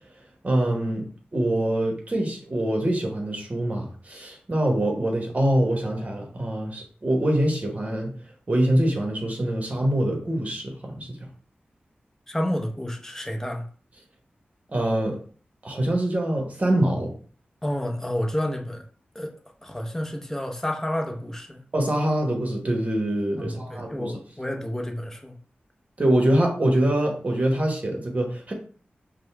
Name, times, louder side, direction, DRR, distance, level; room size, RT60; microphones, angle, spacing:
voice 1, 0.4-8.1 8.5-11.3 14.7-15.2 15.6-17.1 21.7-24.2 26.0-28.5, right 1 dB, 40° right, 1 dB, 1.1 m, -24 dB
voice 2, 12.3-13.7 17.6-18.8 19.1-19.3 19.6-21.6 23.4-25.4, left 1 dB, 15° left, 3 dB, 0.7 m, -30 dB
5.2 x 2.1 x 3.4 m, 0.44 s
wide cardioid pair, 105°, 4 cm